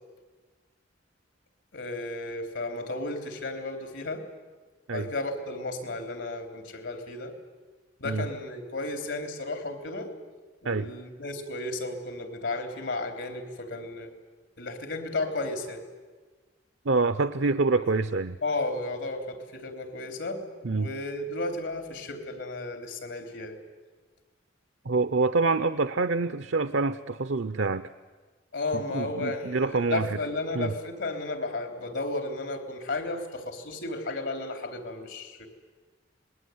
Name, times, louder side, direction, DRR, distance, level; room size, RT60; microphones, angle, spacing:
voice 1, 1.7-4.2 4.9-7.3 8.0-10.1 10.6-14.1 14.6-15.8 17.8-17.9 18.4-23.6 28.5-35.5, left 2 dB, 85° left, 6 dB, 3.9 m, -33 dB
voice 2, 16.8-18.4 20.6-20.9 24.8-27.9 28.7-30.2 30.5-30.7, right 3 dB, 75° right, 11 dB, 0.7 m, -26 dB
26.5 x 20.5 x 9.5 m, 1.4 s
head